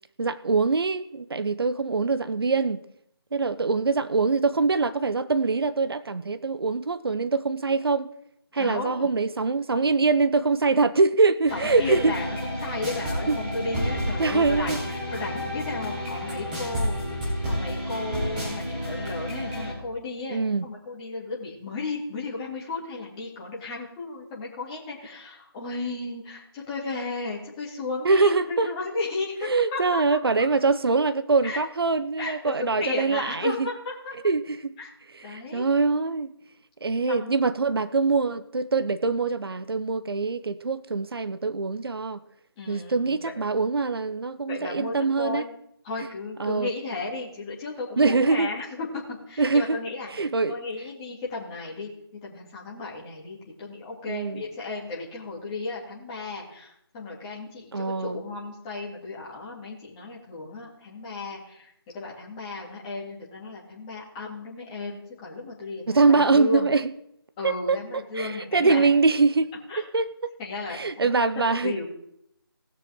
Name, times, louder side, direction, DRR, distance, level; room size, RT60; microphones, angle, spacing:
voice 1, 0.2-2.8 3.3-8.1 8.5-12.1 13.3-13.4 14.2-14.8 20.3-20.7 28.0-28.7 29.4-33.7 34.2-34.7 35.3-36.3 36.8-42.2 42.7-45.4 46.4-46.7 48.0-48.5 49.4-49.8 50.1-50.5 54.1-54.4 57.7-58.2 65.9-66.9 67.4-67.8 68.2-69.5 69.9-70.1 70.7-71.7, right 4 dB, 70° right, 13 dB, 0.7 m, -23 dB
voice 2, 8.5-9.1 11.5-30.0 31.4-31.6 32.2-34.1 34.8-34.9 35.2-35.7 37.1-37.4 42.6-43.2 44.5-45.5 45.8-51.9 52.2-66.7 67.4-68.9 69.7-69.8 70.4-71.8, left 3 dB, 15° left, -5 dB, 2.7 m, -34 dB
sound 1, 11.5-19.7, equal, 20° right, 3.4 m, -30 dB
19.5 x 6.8 x 3.7 m, 0.74 s
figure-of-eight pair, 165°, 13 cm